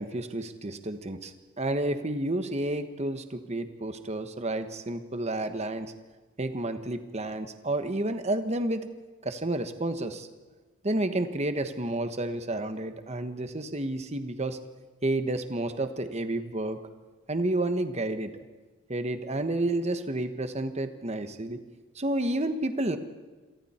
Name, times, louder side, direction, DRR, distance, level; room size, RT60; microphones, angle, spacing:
voice 1, 0.0-5.9 6.4-8.9 9.2-10.3 10.8-14.6 15.0-16.8 17.3-18.3 18.9-21.6 21.9-23.0, right 1 dB, 30° right, 8 dB, 1.3 m, -30 dB
27.5 x 23.5 x 4.4 m, 1.3 s
head